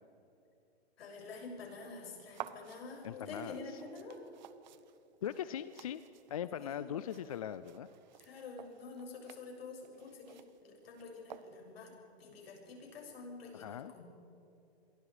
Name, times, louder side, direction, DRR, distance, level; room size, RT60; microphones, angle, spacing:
voice 1, 1.0-4.2 6.6-6.9 8.2-11.9 12.2-14.0, left 3 dB, 65° left, 0 dB, 7.5 m, -48 dB
sound 1, 2.3-11.9, right 10 dB, 45° right, 1.0 m, -54 dB
voice 2, 3.0-3.8 5.2-6.0 6.3-7.9 13.5-13.9, left 9 dB, 35° left, 14 dB, 0.4 m, -40 dB
29.0 x 23.0 x 4.9 m, 2.9 s
hypercardioid pair, 170°, 32 cm